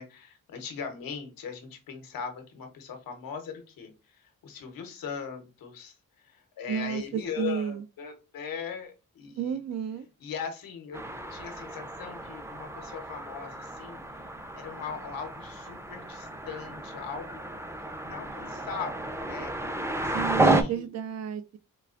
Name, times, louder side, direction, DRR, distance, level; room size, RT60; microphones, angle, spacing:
voice 1, 0.0-6.0 6.2-9.6 10.2-11.0 11.3-14.3 14.5-17.4 18.0-19.5 20.0-20.9, left 6 dB, 85° left, 1.0 m, -40 dB
voice 2, 6.7-7.8 9.4-10.1 20.1-21.6, right 8 dB, 50° right, 0.5 m, -32 dB
sound 1, 10.9-20.6, right 2 dB, 10° right, 0.6 m, -32 dB
4.6 x 2.4 x 2.4 m
supercardioid pair, 50°, 34 cm